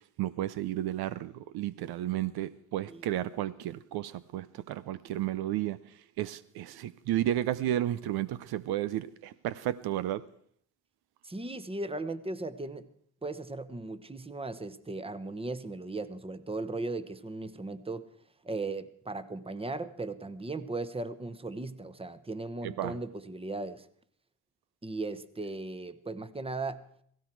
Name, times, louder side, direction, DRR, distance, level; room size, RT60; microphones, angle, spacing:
voice 1, 0.2-5.8 6.2-10.2 22.6-22.9, right 13 dB, 75° right, 0.6 m, -32 dB
voice 2, 11.2-12.9 13.2-18.1 18.4-23.9 24.8-26.9, right 2 dB, 15° right, 1.1 m, -37 dB
17.0 x 16.0 x 4.6 m
supercardioid pair, 65°, 38 cm